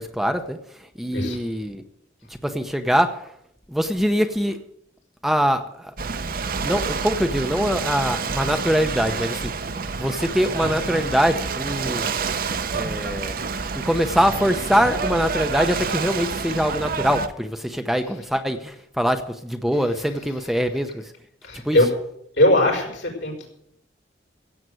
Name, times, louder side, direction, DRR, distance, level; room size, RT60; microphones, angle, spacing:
voice 1, 0.0-1.8 2.4-3.3 3.7-4.6 5.2-5.9 6.6-9.7 10.0-12.2 12.7-13.4 13.7-21.1 21.6-21.8, equal, ahead, 7 dB, 0.7 m, -23 dB
Ocean / Boat Water vehicle, 6.0-17.3, right 4 dB, 50° right, 0.8 m, -28 dB
voice 2, 21.4-21.9 22.4-23.5, left 1 dB, 75° left, 0 dB, 5.6 m, -20 dB
15.5 x 8.1 x 7.7 m, 0.74 s
head